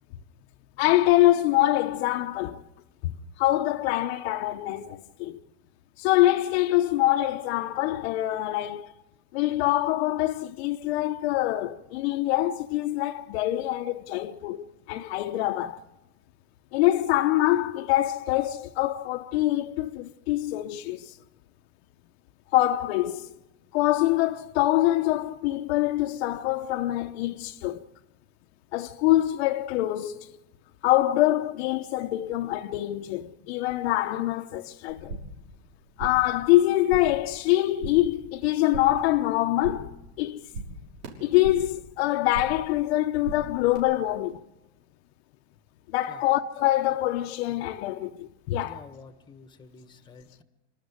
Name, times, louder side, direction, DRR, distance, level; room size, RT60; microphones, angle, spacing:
voice 1, 0.8-2.6 3.0-3.1 3.4-5.4 6.0-8.9 9.3-15.8 16.7-21.2 22.5-23.3 23.7-27.8 28.7-30.3 30.8-35.2 36.0-40.4 41.2-44.4 45.9-48.8, left 15 dB, 65° left, 0.9 m, -25 dB
sound 1, 34.9-35.4 35.7-36.3 36.6-37.3 37.5-38.1 38.4-39.1 39.4-40.0 40.2-41.8 42.1-42.7 43.0-43.8, right 2 dB, 85° right, 6.3 m, -39 dB
voice 2, 48.6-50.4, left 4 dB, 15° left, 1.4 m, -49 dB
26.5 x 12.5 x 9.5 m
supercardioid pair, 155°, 35 cm